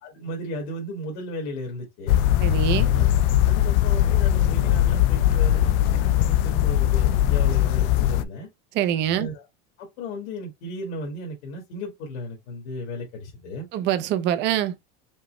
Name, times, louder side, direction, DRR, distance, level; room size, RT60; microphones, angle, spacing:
voice 1, 0.0-2.2 2.8-3.1 3.4-8.5 9.1-9.4 9.8-13.7, left 1 dB, 75° left, 1.6 m, -35 dB
sound 1, 2.1-8.2, left 12 dB, 60° left, 0.5 m, -20 dB
voice 2, 2.4-2.9 8.7-9.3 13.7-14.8, right 11 dB, 35° right, 0.4 m, -24 dB
5.2 x 2.1 x 3.0 m
supercardioid pair, 150°, 33 cm